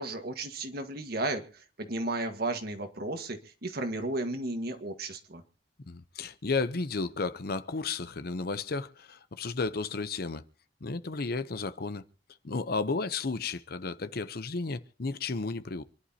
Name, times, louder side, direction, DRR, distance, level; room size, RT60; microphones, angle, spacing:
voice 1, 0.0-5.4, right 2 dB, 60° right, 1.7 m, -34 dB
voice 2, 5.9-10.4 10.8-12.0 12.4-15.8, left 4 dB, 60° left, 0.8 m, -33 dB
27.0 x 11.0 x 2.9 m
head